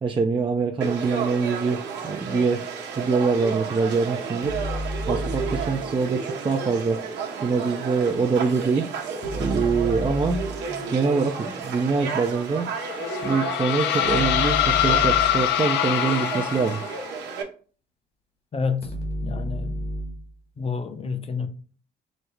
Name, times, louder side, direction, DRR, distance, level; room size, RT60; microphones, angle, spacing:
voice 1, 0.0-2.7 3.0-4.6 5.1-7.0 7.4-8.9 9.4-12.7 13.2-16.8, right 4 dB, 30° right, 0.5 m, -24 dB
Conversation / Crowd, 0.8-17.4, right 5 dB, 80° right, 0.9 m, -32 dB
sound 1, 4.4-5.9 9.2-10.7 14.0-15.5 18.8-20.3, equal, 60° left, 1.6 m, -31 dB
sound 2, 12.8-17.1, left 12 dB, 75° left, 0.4 m, -24 dB
voice 2, 18.5-18.9 19.2-19.9 20.6-21.5, left 5 dB, 35° left, 0.8 m, -29 dB
5.1 x 2.0 x 4.6 m
supercardioid pair, 70°, 18 cm